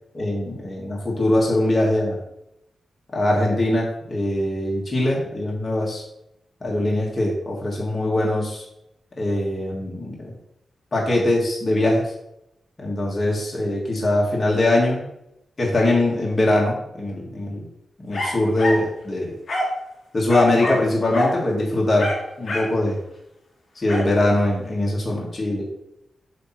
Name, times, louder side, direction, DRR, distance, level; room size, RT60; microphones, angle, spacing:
voice 1, 0.1-2.2 3.1-6.0 6.6-8.6 9.2-10.3 10.9-12.1 12.8-15.1 15.6-17.6 18.0-19.3 20.1-23.0 23.7-25.6, left 1 dB, 30° left, -3 dB, 1.6 m, -22 dB
sound 1, 18.1-18.9 19.5-19.8 20.3-20.9 21.1-21.4 22.0-22.8 23.9-24.1, left 1 dB, 60° left, 2.8 m, -24 dB
8.2 x 3.0 x 5.8 m, 0.82 s
wide cardioid pair, 120°, 0 cm